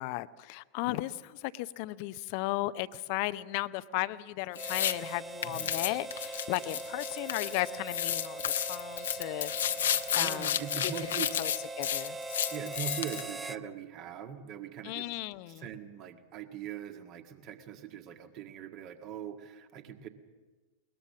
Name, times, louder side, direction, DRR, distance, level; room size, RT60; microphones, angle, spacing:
voice 1, 0.0-8.4 8.7-9.5 10.1-10.6 10.8-10.9 11.4-11.5 11.8-12.2 14.8-15.6, left 18 dB, 45° left, 16 dB, 0.6 m, -35 dB
sound 1, 4.5-4.9 5.4-7.6 7.9-13.3, left 10 dB, 65° left, 0.9 m, -32 dB
Harmonica, 4.5-13.6, right 3 dB, 15° right, 0.6 m, -41 dB
voice 2, 10.1-11.3 12.5-15.1 15.5-20.1, right 8 dB, 40° right, 7 dB, 1.7 m, -41 dB
21.0 x 20.5 x 7.3 m, 1.3 s
figure-of-eight pair, 90°, 0 cm